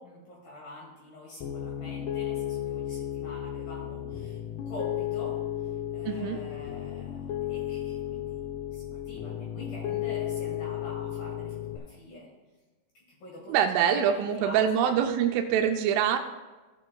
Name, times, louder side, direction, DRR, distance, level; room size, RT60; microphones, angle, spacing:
voice 1, 0.0-5.3 5.6-12.3 12.9-13.5 13.8-14.9, left 1 dB, 55° left, -4 dB, 3.1 m, -45 dB
Piano, 1.4-11.8, left 11 dB, 85° left, 2.3 m, -34 dB
voice 2, 6.1-6.4 13.5-16.2, right 9 dB, 85° right, 5 dB, 3.0 m, -25 dB
15.5 x 8.8 x 2.3 m, 1.2 s
omnidirectional pair, 5.6 m